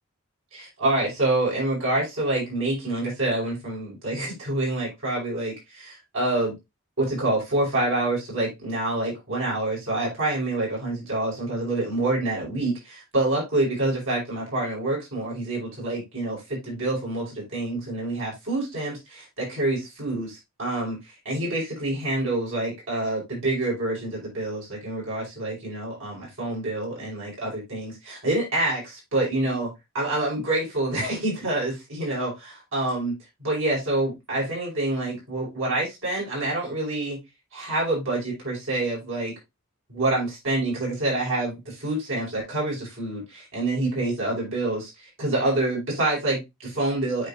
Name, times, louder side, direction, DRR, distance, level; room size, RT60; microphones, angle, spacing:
voice 1, 0.5-6.6 7.0-29.7 29.9-33.1 33.4-37.2 37.5-39.3 39.9-47.3, right 2 dB, 65° right, -4 dB, 5.3 m, -27 dB
8.9 x 5.0 x 2.8 m, 0.21 s
head